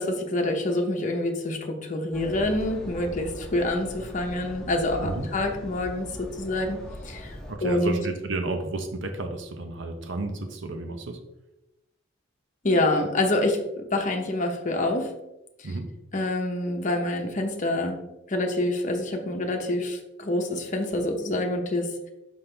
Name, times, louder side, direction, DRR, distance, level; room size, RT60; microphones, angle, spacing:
voice 1, 0.0-6.8 7.0-8.0 12.6-15.1 16.1-18.0 18.3-22.1, left 1 dB, 40° left, 3 dB, 0.9 m, -27 dB
sound 1, 2.1-7.5, equal, 5° left, 1.4 m, -40 dB
voice 2, 7.5-11.2 15.6-15.9, right 2 dB, 65° right, 6 dB, 0.7 m, -32 dB
5.7 x 5.4 x 3.4 m, 0.93 s
head